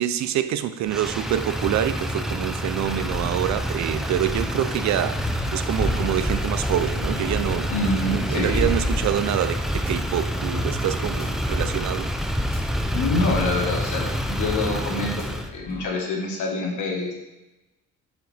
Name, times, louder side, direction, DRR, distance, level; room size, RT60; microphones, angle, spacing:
voice 1, 0.0-5.2 5.5-7.7 8.1-12.1, right 11 dB, 65° right, 12 dB, 0.5 m, -26 dB
Motor vehicle (road), 0.9-15.5, equal, ahead, 0.4 m, -27 dB
sound 1, 5.2-9.1 9.7-13.9 14.2-14.4 15.0-15.9, left 1 dB, 30° left, 1.5 m, -35 dB
voice 2, 7.7-8.9 12.9-15.2 15.5-17.3, left 2 dB, 75° left, 0 dB, 1.5 m, -26 dB
6.4 x 4.9 x 3.4 m, 1.0 s
cardioid pair, 90°, 30 cm